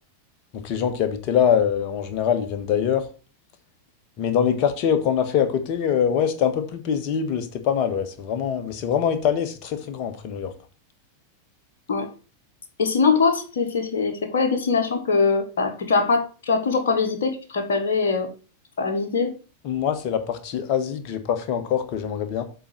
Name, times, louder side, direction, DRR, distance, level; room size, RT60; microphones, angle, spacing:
voice 1, 0.5-3.0 4.2-10.5 19.6-22.4, left 8 dB, 40° left, 1.3 m, -23 dB
voice 2, 12.8-18.3 18.8-19.3, left 4 dB, 60° left, 1.3 m, -22 dB
7.7 x 4.4 x 6.5 m
figure-of-eight pair, 90°, 0 cm